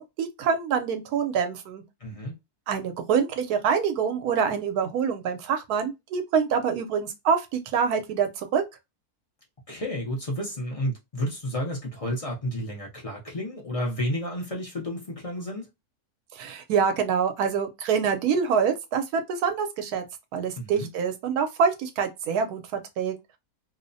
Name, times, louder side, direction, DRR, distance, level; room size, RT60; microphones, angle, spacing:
voice 1, 0.0-1.8 2.7-8.6 16.3-20.0 20.3-23.1, right 6 dB, 85° right, 1.1 m, -26 dB
voice 2, 2.0-2.4 9.7-15.7 20.6-20.9, equal, 45° left, 0.4 m, -31 dB
2.8 x 2.0 x 2.6 m
omnidirectional pair, 1.6 m